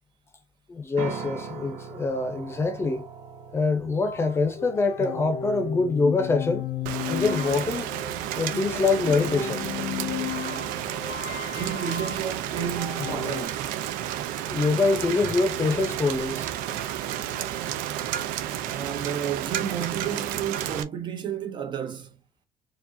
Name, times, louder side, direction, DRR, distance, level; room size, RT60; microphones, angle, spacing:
voice 1, 0.7-3.1 3.5-6.7 7.1-7.9 8.4-9.7 14.5-16.5, left 3 dB, 20° left, 0.7 m, -25 dB
sound 1, 1.0-12.7, right 6 dB, 55° right, 1.0 m, -44 dB
sound 2, 4.1-13.4, left 9 dB, 55° left, 0.6 m, -34 dB
Rain, 6.9-20.8, right 11 dB, 85° right, 0.6 m, -31 dB
voice 2, 11.5-13.7 18.7-22.2, right 8 dB, 35° right, 0.6 m, -32 dB
4.7 x 2.4 x 2.6 m
cardioid pair, 155°, 14 cm